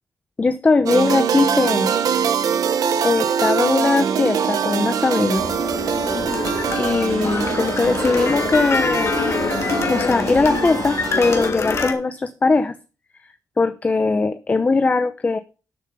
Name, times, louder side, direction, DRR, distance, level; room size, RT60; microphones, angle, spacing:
voice 1, 0.4-1.9 3.0-5.4 6.8-9.1 9.8-12.8 13.6-15.4, left 3 dB, 25° left, 0.9 m, -20 dB
sound 1, 0.9-11.5, right 7 dB, 85° right, 1.5 m, -23 dB
sound 2, 5.4-11.9, left 4 dB, 50° left, 2.7 m, -25 dB
12.5 x 7.2 x 5.5 m
wide cardioid pair, 130°, 6 cm